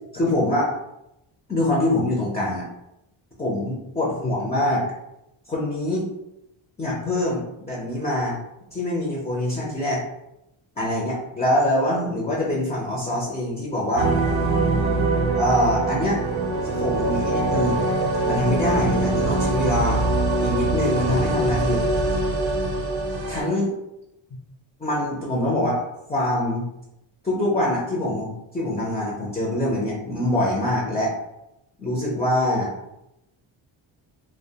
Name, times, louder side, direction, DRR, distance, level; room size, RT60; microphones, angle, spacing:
voice 1, 0.1-0.7 1.5-2.7 3.4-4.8 5.5-6.1 6.8-8.4 8.7-10.0 10.8-14.1 14.8-15.0 15.4-16.2 16.6-17.8 18.2-20.0 20.4-21.8 23.3-23.7 24.8-25.8 26.1-26.7 27.2-31.1 31.8-32.7, left 1 dB, 15° left, -4 dB, 0.4 m, -24 dB
sound 1, 14.0-23.4, right 2 dB, 50° right, 0.5 m, -23 dB
2.3 x 2.2 x 2.7 m, 0.86 s
cardioid pair, 120°, 49 cm